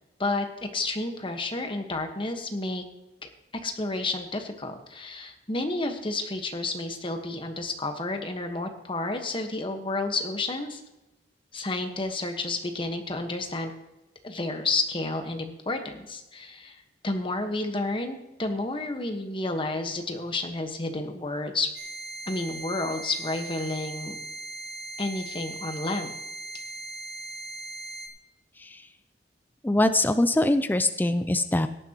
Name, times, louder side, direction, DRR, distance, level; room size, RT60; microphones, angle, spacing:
voice 1, 0.2-2.8 3.6-10.8 11.5-13.7 14.2-21.7 22.3-24.2 25.0-26.1, left 2 dB, 30° left, 5 dB, 1.3 m, -31 dB
sound 1, 21.8-28.1, right 2 dB, 85° right, 2.0 m, -39 dB
voice 2, 29.6-31.7, left 1 dB, 10° left, 10 dB, 0.4 m, -23 dB
17.0 x 10.5 x 3.0 m, 0.95 s
head